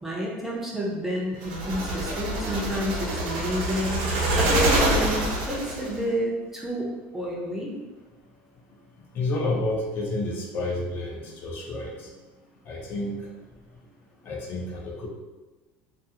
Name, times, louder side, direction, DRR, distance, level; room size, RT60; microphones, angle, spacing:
voice 1, 0.0-6.9 7.1-7.7, equal, 5° right, -3 dB, 0.5 m, -30 dB
sound 1, 1.4-6.0, right 1 dB, 80° right, 0.7 m, -26 dB
voice 2, 9.1-12.1 12.7-13.3 14.2-15.1, left 2 dB, 45° left, -1 dB, 0.5 m, -30 dB
2.4 x 2.4 x 2.7 m, 1.2 s
cardioid pair, 130°, 5 cm